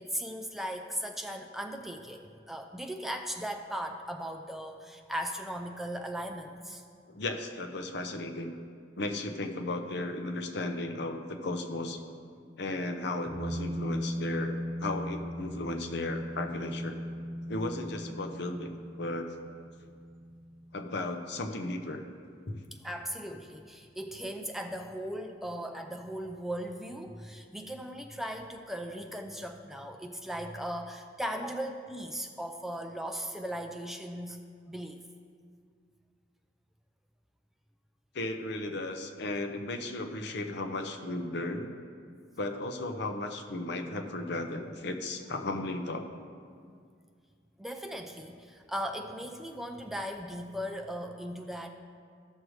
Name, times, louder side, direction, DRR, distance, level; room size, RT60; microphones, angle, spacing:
voice 1, 0.0-6.8 22.8-34.4 34.7-35.0 47.6-51.7, equal, ahead, 4 dB, 0.4 m, -38 dB
voice 2, 7.1-8.5 9.0-12.2 12.6-17.0 17.5-19.3 20.7-22.0 22.5-22.6 38.1-41.7 42.4-46.0, left 2 dB, 65° left, 6 dB, 0.7 m, -35 dB
sound 1, 13.3-22.4 22.7-22.8, equal, 30° right, 1.3 m, -38 dB
14.0 x 6.4 x 3.1 m, 2.2 s
head